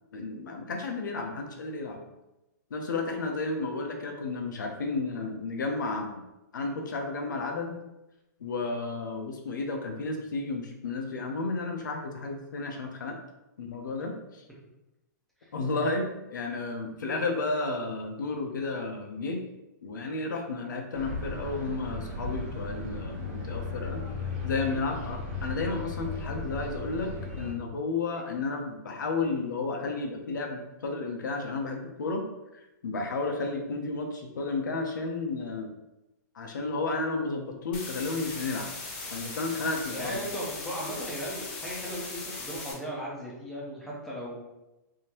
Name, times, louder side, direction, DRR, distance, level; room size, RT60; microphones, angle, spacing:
voice 1, 0.1-2.0 2.7-6.2 6.5-7.8 8.4-13.2 13.6-14.4 15.5-19.4 19.8-24.0 24.4-32.2 32.5-35.7 36.3-38.7 39.1-40.2, left 3 dB, 90° left, 3 dB, 0.7 m, -32 dB
sound 1, 20.9-27.5, left 3 dB, 35° right, 1.0 m, -36 dB
sound 2, 37.7-42.7, left 3 dB, 35° left, 0.8 m, -39 dB
voice 2, 39.9-44.4, equal, ahead, -6 dB, 0.5 m, -37 dB
3.6 x 2.7 x 2.9 m, 0.96 s
hypercardioid pair, 170°, 10 cm